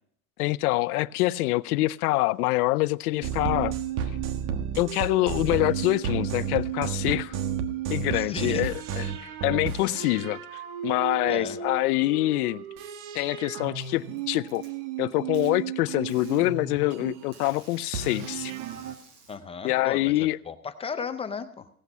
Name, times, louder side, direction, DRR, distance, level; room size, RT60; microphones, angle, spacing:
voice 1, 0.4-3.7 4.8-7.4 7.9-9.1 9.4-12.6 13.1-14.6 15.0-18.5 19.6-20.4, left 19 dB, 85° left, 0.7 m, -25 dB
sound 1, 3.2-17.5 17.9-18.9, right 8 dB, 55° right, 1.4 m, -33 dB
voice 2, 8.1-8.6 11.3-11.6 19.3-21.7, left 6 dB, 15° left, 0.5 m, -35 dB
Packing tape duct tape, 13.7-14.7 15.3-15.5 16.1-16.4 17.3-19.4, right 4 dB, 75° right, 5.9 m, -52 dB
17.0 x 8.3 x 5.4 m
supercardioid pair, 145°, 44 cm